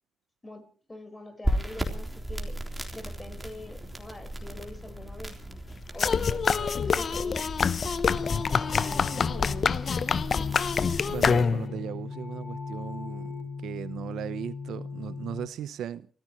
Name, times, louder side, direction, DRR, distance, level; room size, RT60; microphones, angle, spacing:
voice 1, 0.4-2.5 2.9-5.4 5.9-7.5 7.9-9.2, left 2 dB, 20° left, 4.6 m, -44 dB
sound 1, 1.4-11.4, equal, 5° right, 3.6 m, -36 dB
sound 2, 6.0-11.8, left 6 dB, 45° left, 0.8 m, -26 dB
sound 3, 8.1-15.5, left 4 dB, 65° left, 5.6 m, -38 dB
voice 2, 11.1-13.3 13.6-16.1, right 10 dB, 75° right, 0.8 m, -37 dB
30.0 x 14.5 x 3.1 m
cardioid pair, 90°, 0 cm